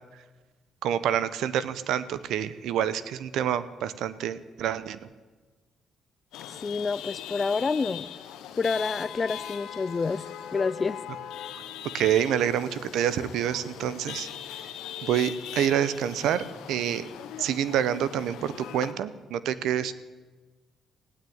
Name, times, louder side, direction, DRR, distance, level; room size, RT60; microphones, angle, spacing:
voice 1, 0.8-5.0 11.9-14.3 15.0-17.0 17.4-19.9, right 10 dB, 80° right, 16 dB, 0.8 m, -27 dB
Chatter / Vehicle horn car horn honking / Traffic noise roadway noise, 6.3-18.9, left 10 dB, 90° left, 1.1 m, -40 dB
voice 2, 6.6-8.1 8.6-11.0, left 4 dB, 35° left, 16 dB, 0.5 m, -28 dB
16.0 x 9.2 x 9.4 m, 1.3 s
cardioid pair, 90°, 0 cm